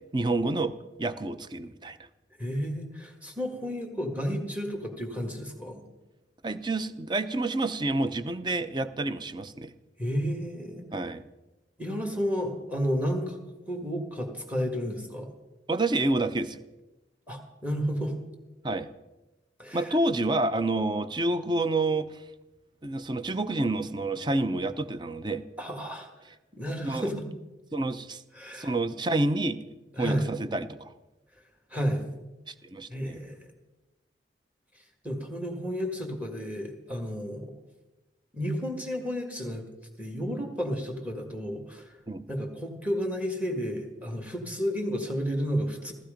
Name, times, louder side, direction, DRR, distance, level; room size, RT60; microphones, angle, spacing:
voice 1, 0.1-2.0 6.4-9.7 10.9-11.2 15.7-16.6 18.6-18.9 19.7-22.1 22.8-25.4 26.8-27.1 27.7-28.2 28.5-29.6 30.0-30.9 32.5-33.2 42.1-42.2, right 2 dB, 25° right, 12 dB, 0.7 m, -28 dB
voice 2, 2.4-5.8 10.0-10.8 11.8-15.3 17.3-18.1 19.6-20.0 25.6-26.1 26.5-27.3 28.3-28.7 30.0-30.3 31.7-32.0 32.9-33.4 35.0-37.5 38.3-39.7 40.0-42.0 42.3-45.9, equal, 10° right, 2 dB, 1.8 m, -32 dB
15.0 x 15.0 x 5.1 m, 1.0 s
head